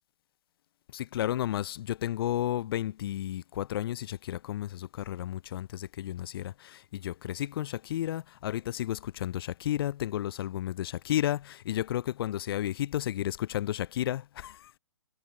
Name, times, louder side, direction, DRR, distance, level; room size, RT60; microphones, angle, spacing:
voice 1, 0.9-14.7, left 12 dB, 50° left, 5.0 m, -32 dB
figure-of-eight pair, 125°, 16 cm